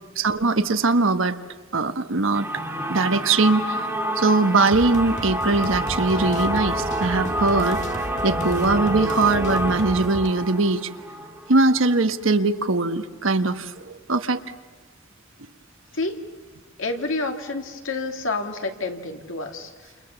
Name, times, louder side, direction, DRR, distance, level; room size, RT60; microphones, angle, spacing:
voice 1, 0.2-1.4 1.7-2.5 2.9-3.8 4.2-7.8 8.2-10.9 11.5-14.4, right 3 dB, 80° right, 9 dB, 1.4 m, -21 dB
sound 1, 2.3-12.0, right 1 dB, 10° right, 2.8 m, -28 dB
sound 2, 4.7-10.3, left 1 dB, 40° left, 1.7 m, -34 dB
voice 2, 16.8-19.7, left 3 dB, 80° left, 4 dB, 2.6 m, -28 dB
29.5 x 28.5 x 7.1 m, 1.4 s
head